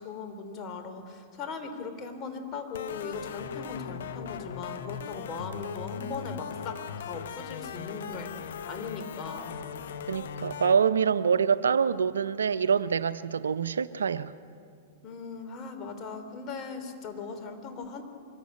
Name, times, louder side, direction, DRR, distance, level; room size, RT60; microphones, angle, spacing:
voice 1, 0.0-9.6 15.0-18.0, left 4 dB, 35° left, 3.2 m, -39 dB
sound 1, 2.7-10.8, left 7 dB, 70° left, 1.1 m, -39 dB
voice 2, 10.1-14.3, right 6 dB, 85° right, 0.6 m, -25 dB
24.0 x 14.5 x 9.7 m
hypercardioid pair, 110°, 0 cm